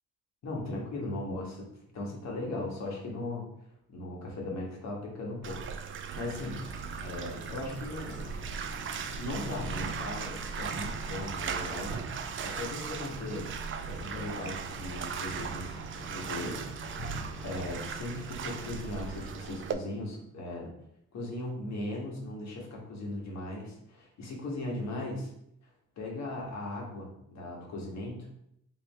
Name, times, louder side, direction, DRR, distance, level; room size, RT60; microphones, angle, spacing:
voice 1, 0.4-1.7 1.9-3.5 3.9-6.6 7.0-8.3 9.2-12.1 12.4-13.5 13.9-16.6 16.9-17.0 17.4-20.7 21.1-25.3 26.0-28.3, left 2 dB, 60° left, -2 dB, 1.4 m, -38 dB
Bathtub (filling or washing), 5.4-19.7, right 6 dB, 45° right, 0.4 m, -38 dB
sound 1, 6.2-19.3, equal, 25° left, 0.7 m, -46 dB
4.6 x 2.5 x 3.4 m, 0.76 s
cardioid pair, 90°, 30 cm